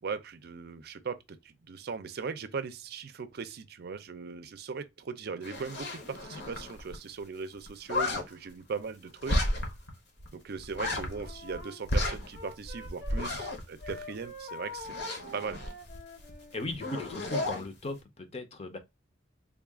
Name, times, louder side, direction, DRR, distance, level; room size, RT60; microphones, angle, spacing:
voice 1, 0.0-9.4 10.3-14.9 15.3-15.6, right 5 dB, 55° right, 0.5 m, -39 dB
sound 1, 5.4-7.0 7.2-7.3 7.5-8.2 9.2-9.9 10.2-10.3 10.6-11.6 11.9-14.4 14.8-16.3 16.6-17.7, left 1 dB, 60° left, 1.0 m, -33 dB
Wind instrument woodwind instrument, 10.9-13.5 13.8-16.6, left 1 dB, 85° left, 1.0 m, -45 dB
voice 2, 16.5-18.8, left 2 dB, 35° left, 0.6 m, -38 dB
3.6 x 2.4 x 3.5 m
head